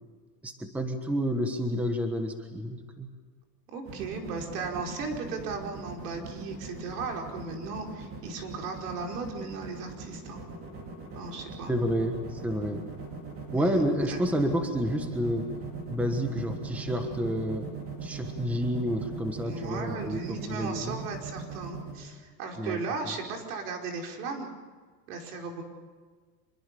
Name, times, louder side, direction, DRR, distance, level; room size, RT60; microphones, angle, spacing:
voice 1, 0.4-3.1 11.7-12.8 13.5-15.5 15.9-17.7 18.0-21.0 22.6-22.8, equal, 5° right, 6 dB, 1.3 m, -29 dB
voice 2, 3.7-10.4 11.1-11.7 13.6-14.2 19.4-24.5 25.1-25.6, right 4 dB, 70° right, 2 dB, 5.1 m, -36 dB
sound 1, 3.9-21.9, right 5 dB, 25° right, 4.4 m, -40 dB
25.5 x 22.5 x 6.9 m, 1.5 s
supercardioid pair, 165°, 47 cm